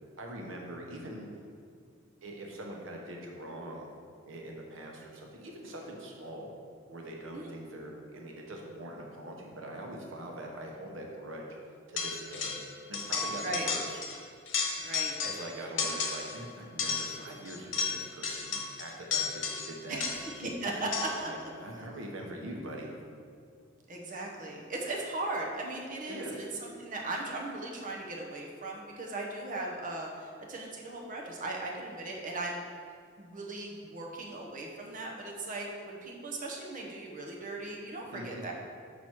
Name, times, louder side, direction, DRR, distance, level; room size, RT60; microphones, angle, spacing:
voice 1, 0.2-1.3 2.2-3.9 4.3-6.5 6.9-11.4 11.9-12.6 12.9-14.0 15.2-20.0 21.2-22.9 26.1-26.5 38.1-38.5, right 1 dB, 85° right, 0 dB, 1.0 m, -43 dB
sound 1, 12.0-12.7 12.9-14.2 14.5-15.5 15.8-16.4 16.8-20.4 20.9-21.3, left 5 dB, 70° left, 1.0 m, -33 dB
voice 2, 14.8-15.2 19.9-21.3 23.9-32.6 33.2-38.5, right 2 dB, 45° right, -1 dB, 1.0 m, -38 dB
6.0 x 5.9 x 4.6 m, 2.2 s
head